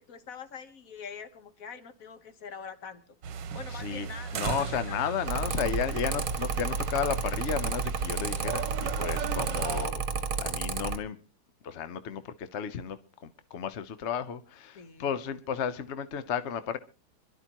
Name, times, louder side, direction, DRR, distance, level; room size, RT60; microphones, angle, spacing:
voice 1, 0.0-3.0 3.5-4.8 14.7-15.1, left 6 dB, 50° left, 1.4 m, -44 dB
sound 1, 3.2-9.9, right 6 dB, 65° right, 1.5 m, -36 dB
voice 2, 3.7-4.1 4.3-11.2 11.6-16.8, left 8 dB, 65° left, 0.6 m, -33 dB
Mechanical fan, 5.2-11.0, right 5 dB, 50° right, 1.3 m, -32 dB
26.0 x 11.5 x 2.9 m
omnidirectional pair, 2.2 m